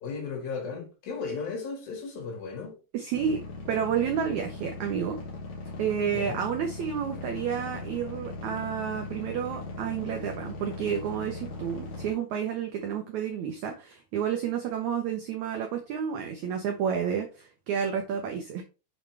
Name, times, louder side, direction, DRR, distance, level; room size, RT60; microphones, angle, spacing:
voice 1, 0.0-2.8 6.1-6.4, left 4 dB, 70° left, 3.7 m, -35 dB
voice 2, 2.9-3.4 3.7-5.2 5.8-18.6, right 8 dB, 80° right, 1.7 m, -30 dB
sound 1, 3.1-12.1, left 3 dB, 50° left, 2.7 m, -39 dB
7.1 x 5.2 x 3.3 m
omnidirectional pair, 4.4 m